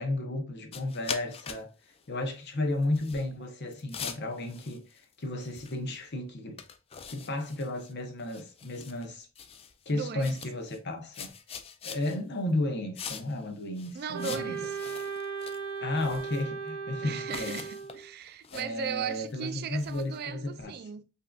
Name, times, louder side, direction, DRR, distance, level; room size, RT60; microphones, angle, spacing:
voice 1, 0.0-1.7 2.1-6.6 7.1-9.3 9.9-11.3 11.8-14.5 15.8-17.6 18.5-20.7, left 1 dB, 60° left, 0.8 m, -33 dB
sound 1, 0.7-1.6 1.9-2.1 2.8-3.3 3.7-5.1 5.4-6.0 6.2-6.3 6.6-7.9 8.2-9.0 9.4-9.9 10.2-10.8 11.1-12.2 12.9-13.5 13.7-15.6 15.9-16.4 17.3-20.2, left 7 dB, 30° left, 0.4 m, -43 dB
voice 2, 9.9-10.3 13.9-14.8 17.0-21.0, right 7 dB, 50° right, 0.3 m, -37 dB
Wind instrument woodwind instrument, 14.1-18.1, right 5 dB, 90° right, 0.7 m, -37 dB
5.3 x 2.6 x 2.3 m
head